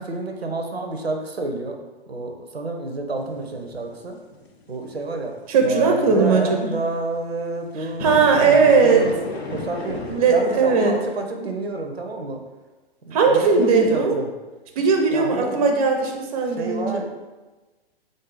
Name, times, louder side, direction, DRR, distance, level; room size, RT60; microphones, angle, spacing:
voice 1, 0.0-1.8 2.1-4.2 4.7-5.4 5.6-9.2 9.5-12.4 13.1-14.3 15.1-15.5 16.5-17.0, right 2 dB, 85° right, 4 dB, 0.6 m, -29 dB
sound 1, 3.2-6.5 7.8-10.9, left 2 dB, 90° left, 0.6 m, -34 dB
voice 2, 5.5-6.7 8.0-9.0 10.1-10.9 13.1-14.2 14.8-17.0, right 4 dB, 35° right, 3 dB, 0.6 m, -18 dB
3.7 x 2.6 x 3.8 m, 1.2 s
figure-of-eight pair, 120°, 30 cm